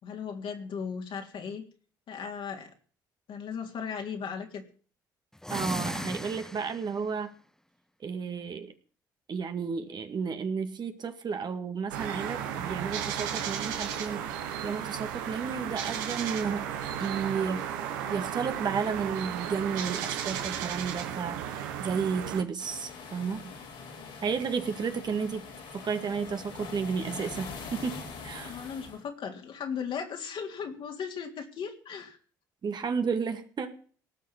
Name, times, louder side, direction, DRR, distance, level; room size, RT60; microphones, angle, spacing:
voice 1, 0.0-1.6 2.1-2.7 3.3-4.6 28.4-32.2, left 6 dB, 55° left, 3 dB, 3.5 m, -37 dB
sound 1, 5.4-7.0, left 1 dB, 5° left, 1.2 m, -36 dB
voice 2, 5.5-7.3 8.0-8.7 9.3-14.4 14.6-16.7 17.0-17.6 18.1-23.5 24.2-25.4 25.7-28.6 32.6-33.7, right 6 dB, 45° right, 7 dB, 2.0 m, -32 dB
sound 2, 11.9-22.4, right 9 dB, 80° right, 1.6 m, -34 dB
sound 3, 22.6-29.0, left 4 dB, 75° left, 5.1 m, -43 dB
18.5 x 6.6 x 9.7 m, 0.43 s
hypercardioid pair, 50°, 10 cm